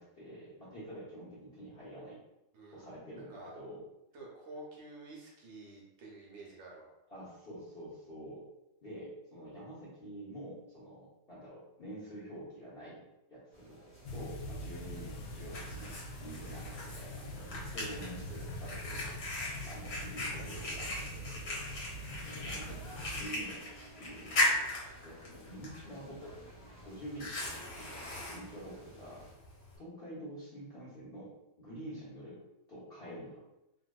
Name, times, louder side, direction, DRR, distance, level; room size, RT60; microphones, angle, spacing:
voice 1, 0.0-2.2 2.7-3.8 7.1-8.4 8.8-13.0 13.3-13.8 14.1-19.1 19.6-21.6 22.2-23.7 24.0-24.7 25.0-26.4 26.8-29.2 29.8-31.3 31.6-32.4 32.7-33.4, right 1 dB, 40° left, -10 dB, 0.9 m, -47 dB
voice 2, 2.5-3.5 4.1-6.9, right 2 dB, 70° right, -3 dB, 1.3 m, -50 dB
sound 1, 13.5-29.3, right 1 dB, 10° left, 0.4 m, -57 dB
sound 2, 14.0-23.2, equal, 80° left, 1.4 m, -44 dB
Fire, 14.8-29.8, left 2 dB, 65° left, 1.4 m, -39 dB
3.3 x 2.6 x 2.2 m, 0.91 s
omnidirectional pair, 2.2 m